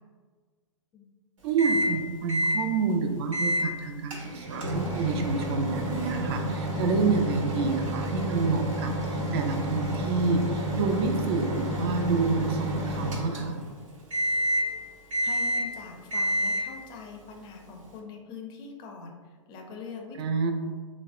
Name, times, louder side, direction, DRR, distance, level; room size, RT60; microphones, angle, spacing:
voice 1, 1.4-13.6 20.2-20.5, right 4 dB, 50° right, 5 dB, 0.4 m, -28 dB
Microwave oven, 1.6-2.0 2.3-2.6 3.3-3.7 4.1-13.7 14.1-14.7 15.1-15.8 16.1-16.7, equal, 80° right, 0.8 m, -29 dB
voice 2, 15.2-20.2, left 4 dB, 25° left, 2 dB, 0.4 m, -43 dB
3.3 x 2.1 x 2.3 m, 1.5 s
hypercardioid pair, 120°, 17 cm